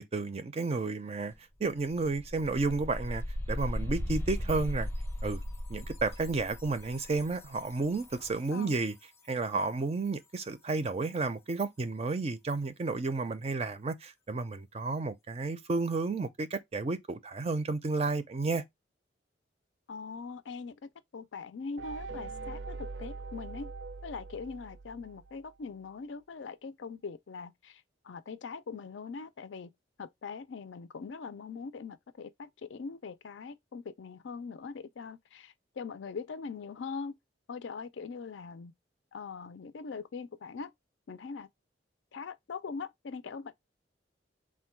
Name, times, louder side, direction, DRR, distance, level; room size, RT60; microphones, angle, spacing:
voice 1, 0.0-1.3 1.6-3.2 3.5-4.9 5.2-5.4 5.7-8.9 9.3-18.6, right 3 dB, 35° right, 0.4 m, -32 dB
sound 1, 1.3-1.4 1.7-8.5, left 1 dB, 15° left, 0.6 m, -37 dB
voice 2, 19.9-23.7 24.0-29.7 30.0-37.2 37.5-38.7 39.1-40.7 41.1-41.5 42.1-43.5, left 5 dB, 80° left, 0.5 m, -42 dB
sound 2, 21.8-25.5, right 3 dB, 85° right, 0.5 m, -42 dB
3.6 x 2.2 x 4.4 m
head